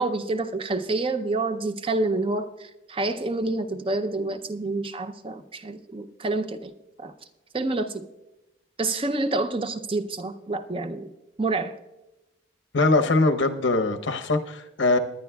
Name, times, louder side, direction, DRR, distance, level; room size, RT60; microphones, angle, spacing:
voice 1, 0.0-6.7 7.0-7.1 7.5-8.1 8.8-11.1 11.4-11.7, right 2 dB, 25° right, 10 dB, 0.5 m, -28 dB
voice 2, 12.7-15.0, left 2 dB, 75° left, 7 dB, 0.8 m, -22 dB
20.0 x 10.5 x 2.3 m, 0.95 s
head